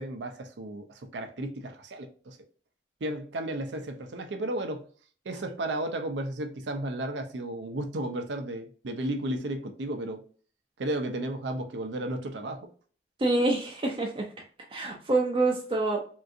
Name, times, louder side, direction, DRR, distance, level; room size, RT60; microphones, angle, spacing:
voice 1, 0.0-2.4 3.0-4.8 5.3-10.2 10.8-12.7, right 1 dB, 75° right, 0.5 m, -33 dB
voice 2, 13.2-14.3 14.7-16.0, right 2 dB, 30° right, 0.5 m, -26 dB
3.7 x 2.6 x 2.4 m
head